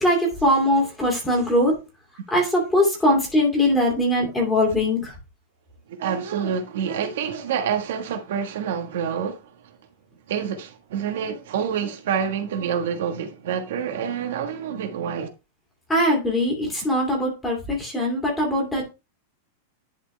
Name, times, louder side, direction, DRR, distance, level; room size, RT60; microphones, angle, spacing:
voice 1, 0.0-1.8 2.3-5.1 15.9-18.9, left 1 dB, 5° left, 2.5 m, -21 dB
voice 2, 5.9-9.8 10.3-15.3, right 7 dB, 65° right, 1.3 m, -27 dB
11.0 x 4.4 x 3.2 m
supercardioid pair, 175°, 0 cm